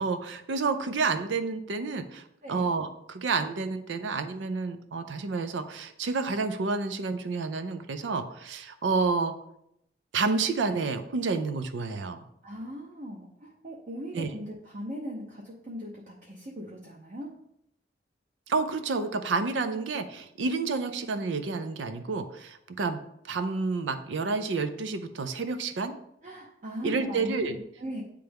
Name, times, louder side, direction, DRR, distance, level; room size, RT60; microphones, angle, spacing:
voice 1, 0.0-9.3 10.1-12.2 14.1-14.3 18.5-25.9 26.8-27.6, right 4 dB, 85° right, 10 dB, 0.5 m, -29 dB
voice 2, 12.4-17.3 26.2-28.0, equal, 45° right, -3 dB, 0.8 m, -39 dB
8.8 x 3.3 x 3.5 m, 0.78 s
head